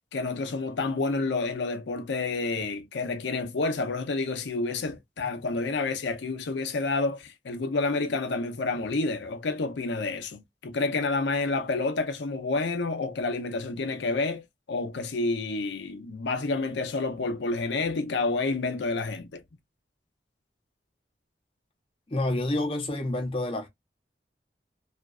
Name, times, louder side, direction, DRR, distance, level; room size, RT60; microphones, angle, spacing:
voice 1, 0.1-14.4 14.7-19.4, left 3 dB, 90° left, 0.6 m, -29 dB
voice 2, 22.1-23.7, left 1 dB, 30° left, 0.6 m, -28 dB
2.5 x 2.3 x 2.2 m
head